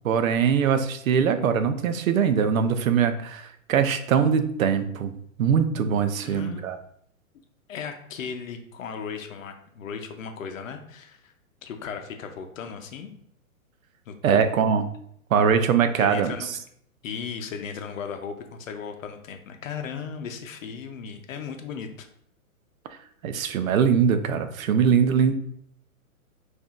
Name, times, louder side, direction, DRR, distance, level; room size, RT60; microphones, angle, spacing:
voice 1, 0.0-5.1 5.4-6.8 14.2-14.9 15.3-16.3 23.2-25.3, right 7 dB, 70° right, 9 dB, 0.6 m, -22 dB
voice 2, 6.2-6.7 7.7-11.3 11.6-13.1 14.1-14.5 16.0-16.6 17.0-22.1, left 6 dB, 65° left, 6 dB, 0.7 m, -36 dB
5.5 x 2.6 x 2.4 m, 0.68 s
hypercardioid pair, 155°, 43 cm